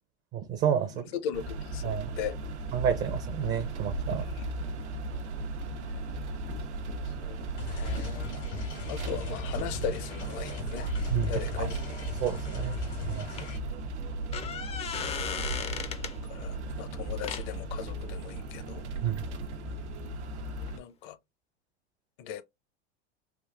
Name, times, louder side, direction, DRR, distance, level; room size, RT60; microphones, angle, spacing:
voice 1, 0.3-1.1 1.8-2.1 2.7-4.3 11.1-11.3 11.6-11.7 12.2-12.8 13.1-13.3 19.0-19.3, right 9 dB, 35° right, 0.5 m, -30 dB
voice 2, 0.9-1.9 2.2-2.4 4.4-4.5 7.2-7.4 7.7-8.3 8.9-10.9 11.3-11.8 16.3-18.8 20.7-21.2 22.2-22.4, left 9 dB, 55° left, 0.6 m, -38 dB
sound 1, 1.3-20.8, right 1 dB, 90° right, 0.7 m, -36 dB
sound 2, 7.6-13.6, equal, 85° left, 1.7 m, -39 dB
sound 3, 12.8-12.9 13.4-13.5 14.1-16.2 17.2-17.5 20.7-20.8 21.0-21.1, left 7 dB, 20° left, 0.4 m, -36 dB
3.6 x 2.5 x 2.3 m
hypercardioid pair, 100°, 33 cm